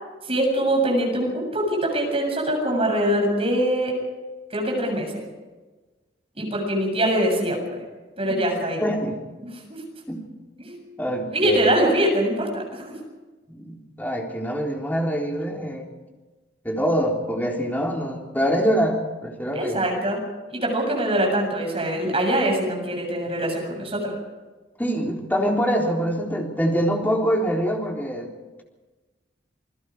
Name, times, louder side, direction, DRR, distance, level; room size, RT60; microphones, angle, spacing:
voice 1, 0.2-3.9 4.5-5.2 6.4-7.8 8.2-8.8 9.4-9.8 10.6-10.7 11.3-12.9 19.5-20.2 20.5-24.1, right 1 dB, 35° right, 1 dB, 7.5 m, -23 dB
voice 2, 8.8-9.2 10.1-10.2 11.0-11.7 13.5-15.9 16.6-19.8 24.8-28.3, equal, 10° left, -1 dB, 3.9 m, -24 dB
29.0 x 21.0 x 4.9 m, 1.2 s
head